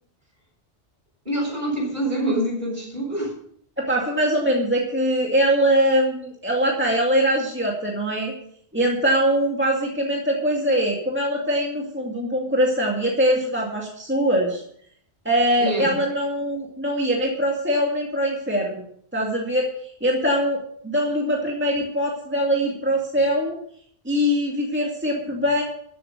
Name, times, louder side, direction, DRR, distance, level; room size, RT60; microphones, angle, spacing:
voice 1, 1.2-3.3 15.6-16.0, right 1 dB, 40° right, -3 dB, 7.6 m, -25 dB
voice 2, 3.8-8.3 8.7-14.6 15.2-18.8 19.1-23.6 24.1-25.6, equal, 10° right, -2 dB, 2.2 m, -22 dB
14.5 x 8.0 x 6.6 m, 0.66 s
omnidirectional pair, 1.2 m